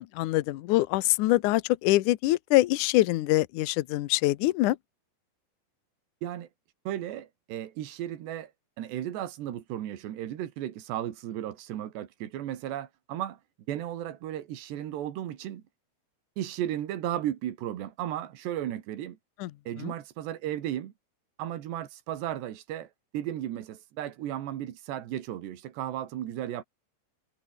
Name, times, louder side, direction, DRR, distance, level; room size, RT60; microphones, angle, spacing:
voice 1, 0.0-4.8 19.4-19.5 19.8-19.9, left 17 dB, 80° left, 1.8 m, -24 dB
voice 2, 6.9-8.5 8.8-13.4 13.7-15.6 16.4-19.2 19.7-20.9 21.4-26.6, right 12 dB, 85° right, 4.1 m, -35 dB
omnidirectional pair, 4.8 m